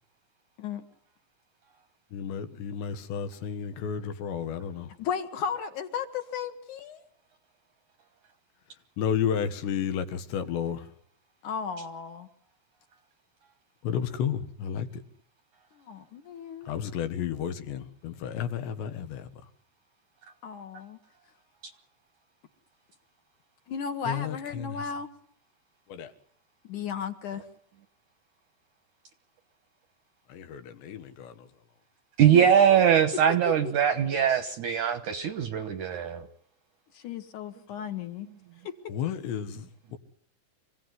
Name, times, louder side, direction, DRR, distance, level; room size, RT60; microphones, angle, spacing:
voice 1, 2.1-4.9 9.0-10.9 13.8-15.0 16.7-19.3 24.1-24.8 25.9-26.1 30.3-31.5 38.9-40.0, left 8 dB, 90° left, 3.9 m, -32 dB
voice 2, 5.0-7.0 11.4-12.3 15.8-16.7 20.4-21.0 23.7-25.1 26.6-27.4 32.3-32.5 36.9-38.3 38.6-38.7, left 7 dB, 55° left, 2.6 m, -35 dB
voice 3, 32.2-36.3, right 9 dB, 65° right, 2.0 m, -22 dB
26.5 x 16.5 x 9.5 m
omnidirectional pair, 4.9 m